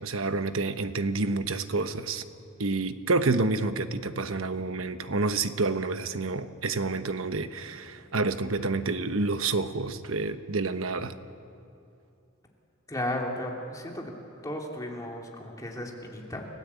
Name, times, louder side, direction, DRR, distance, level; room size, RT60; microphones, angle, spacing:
voice 1, 0.0-2.2 2.6-11.1, right 3 dB, 75° right, 10 dB, 1.1 m, -28 dB
voice 2, 12.9-14.1 14.4-16.5, left 1 dB, 15° left, 0 dB, 2.9 m, -34 dB
30.0 x 16.5 x 8.3 m, 2.6 s
head